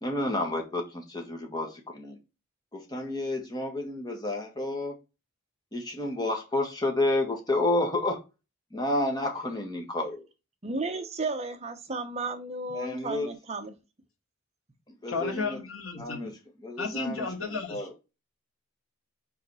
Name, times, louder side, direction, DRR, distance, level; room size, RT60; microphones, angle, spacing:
voice 1, 0.0-2.2 2.7-4.9 5.7-8.2 8.7-10.2 12.7-13.3 15.0-15.6 15.9-17.9, left 2 dB, 20° left, 1.5 m, -30 dB
voice 2, 10.6-13.7, right 3 dB, 30° right, 0.8 m, -33 dB
voice 3, 15.1-16.3 16.8-17.9, left 4 dB, 85° left, 2.2 m, -33 dB
5.1 x 4.8 x 4.8 m
head